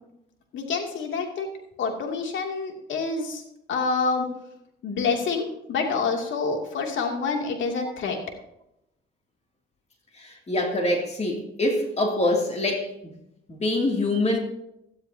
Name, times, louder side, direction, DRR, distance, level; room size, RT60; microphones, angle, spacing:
voice 1, 0.5-1.5 1.8-3.4 3.7-4.3 4.8-8.2, left 4 dB, 70° left, 2 dB, 2.8 m, -27 dB
voice 2, 10.2-13.1 13.5-14.4, left 1 dB, 35° left, 1 dB, 2.8 m, -25 dB
18.5 x 12.5 x 2.9 m, 0.82 s
cardioid pair, 90°, 20 cm